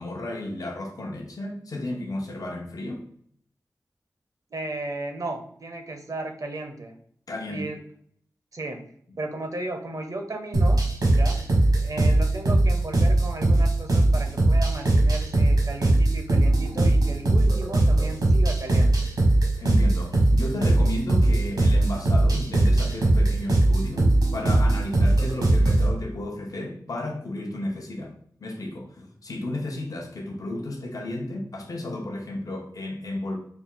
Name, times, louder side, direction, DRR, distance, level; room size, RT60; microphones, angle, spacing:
voice 1, 0.0-3.0 7.3-7.7 19.6-28.1 28.4-33.4, left 1 dB, 65° left, 1 dB, 0.7 m, -33 dB
voice 2, 4.5-6.9 7.5-7.8 8.5-8.8 9.2-10.8 11.1-11.4 11.8-19.1, right 2 dB, 60° right, 4 dB, 0.7 m, -35 dB
sound 1, 10.5-25.9, right 2 dB, 80° right, 1.2 m, -20 dB
4.3 x 2.3 x 3.5 m, 0.63 s
cardioid pair, 50°, 7 cm